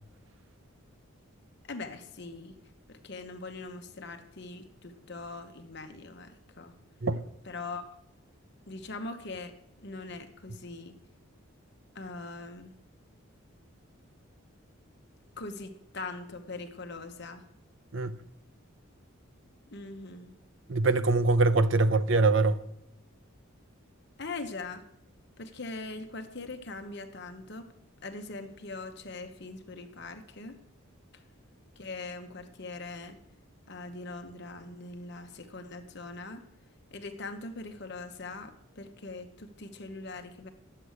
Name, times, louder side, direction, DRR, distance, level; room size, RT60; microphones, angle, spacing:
voice 1, 1.7-2.5 2.9-6.7 7.4-8.0 8.7-11.0 11.9-12.7 15.4-17.4 19.7-20.3 24.2-24.8 25.4-27.7 28.0-30.6 31.1-31.2 31.8-33.2 33.7-36.4 36.9-40.5, left 3 dB, 50° left, 1.1 m, -41 dB
voice 2, 20.7-22.6, right 3 dB, 60° right, 0.7 m, -23 dB
11.0 x 7.7 x 6.6 m
head